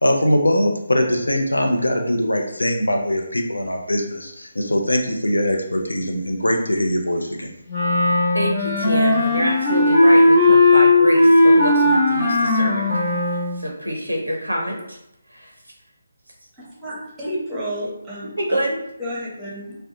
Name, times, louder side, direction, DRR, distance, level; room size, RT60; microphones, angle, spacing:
voice 1, 0.0-7.5, left 1 dB, 80° left, 3 dB, 0.4 m, -21 dB
Wind instrument woodwind instrument, 7.7-13.6, left 2 dB, 25° left, 0.8 m, -16 dB
voice 2, 8.3-12.8 13.2-15.0 15.3-15.5 18.4-18.8, equal, 90° right, 1 dB, 0.5 m, -26 dB
voice 3, 16.8-18.6 19.0-19.8, equal, 10° right, -6 dB, 0.8 m, -30 dB
2.6 x 2.1 x 2.5 m, 0.79 s
figure-of-eight pair, 150°, 0 cm